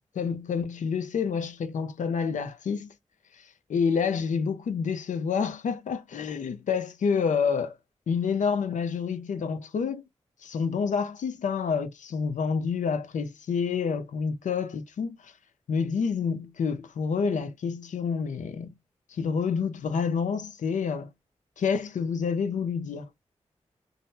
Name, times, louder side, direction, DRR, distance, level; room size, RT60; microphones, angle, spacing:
voice 1, 0.1-2.9 3.7-7.8 8.1-10.0 10.4-15.3 15.7-18.7 19.1-21.1 21.6-23.1, left 6 dB, 90° left, 0.6 m, -28 dB
3.8 x 2.1 x 2.6 m
cardioid pair, 50°, 12 cm